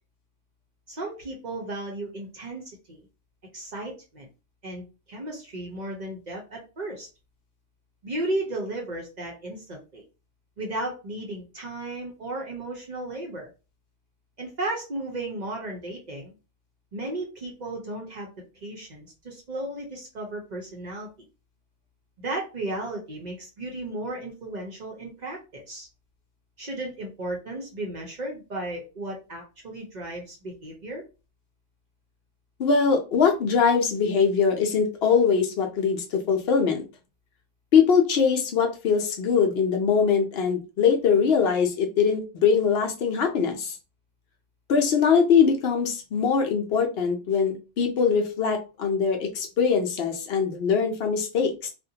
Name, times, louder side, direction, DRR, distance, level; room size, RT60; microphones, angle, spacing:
voice 1, 0.9-3.0 3.5-4.3 4.6-7.1 8.0-10.0 10.6-13.5 14.4-16.3 16.9-18.3 18.6-21.1 22.2-25.9 26.6-31.0, right 2 dB, 50° right, 1 dB, 0.7 m, -34 dB
voice 2, 32.6-36.8 37.7-43.8 44.7-51.7, left 6 dB, 70° left, 3 dB, 0.8 m, -22 dB
2.4 x 2.1 x 2.7 m, 0.31 s
omnidirectional pair, 1.1 m